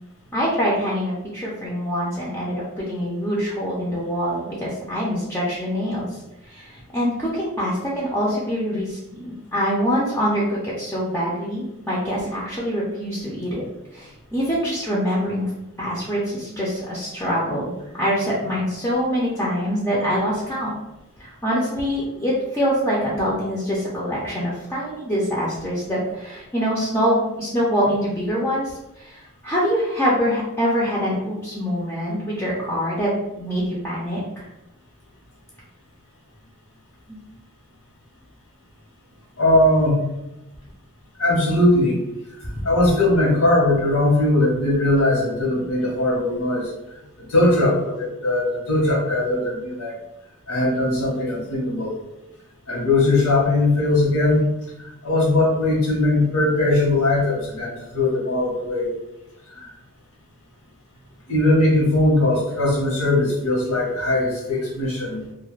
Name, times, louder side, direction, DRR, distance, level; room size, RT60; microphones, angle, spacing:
voice 1, 0.3-6.1 6.4-13.6 13.9-15.5 15.8-20.7 21.2-28.7 29.0-33.1 33.4-34.5 37.1-37.2, equal, 10° left, -6 dB, 0.4 m, -24 dB
voice 2, 39.4-40.0 41.2-42.0 42.6-46.7 47.3-49.9 50.5-51.9 52.7-54.4 54.8-58.9 59.6-59.7 61.3-65.2, left 2 dB, 80° left, -4 dB, 1.0 m, -20 dB
2.3 x 2.1 x 3.1 m, 0.93 s
head